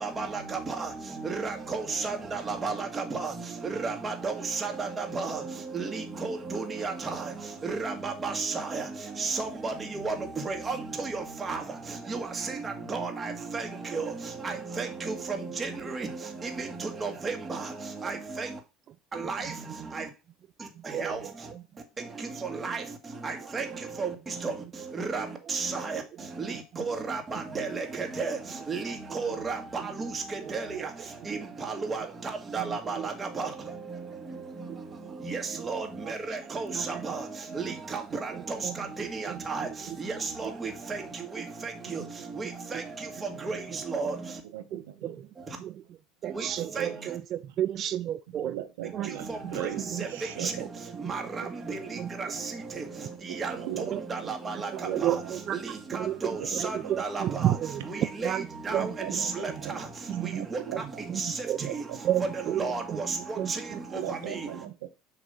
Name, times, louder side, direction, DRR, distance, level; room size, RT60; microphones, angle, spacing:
voice 1, 0.0-18.6 19.1-20.1 20.8-21.5 22.0-44.4 45.5-45.6 46.3-46.9 49.0-64.6, right 4 dB, 25° right, 4 dB, 1.6 m, -34 dB
voice 2, 20.7-21.6 26.7-26.8 27.9-28.0 29.3-29.4 29.8-29.9 30.4-30.5 32.6-33.1 34.7-34.8 35.5-35.7 36.0-36.4 36.7-37.0 37.6-37.7 38.3-38.8 39.3-40.0 40.4-40.5 41.8-42.1 42.7-42.8 44.7-45.3 45.6-45.8 46.2-48.6 48.9-49.1 49.4-50.0 50.4-50.7 51.0-51.2 51.4-51.5 52.0-52.1 53.9-55.6 55.9-58.5 58.7-59.4 59.6-59.7 60.1-60.5 60.7-60.8 61.1-61.7 62.0-63.0 63.4-63.8, right 11 dB, 50° right, 12 dB, 0.4 m, -33 dB
voice 3, 44.5-45.2 46.6-47.1 48.3-50.7 51.8-51.9 53.3-54.0 54.8-55.1 56.4-56.9 58.7-59.8 60.3-61.0 61.6-62.2 62.4-62.7 63.9-64.9, right 12 dB, 75° right, 8 dB, 0.9 m, -39 dB
6.5 x 2.9 x 5.4 m, 0.29 s
hypercardioid pair, 75°, 0 cm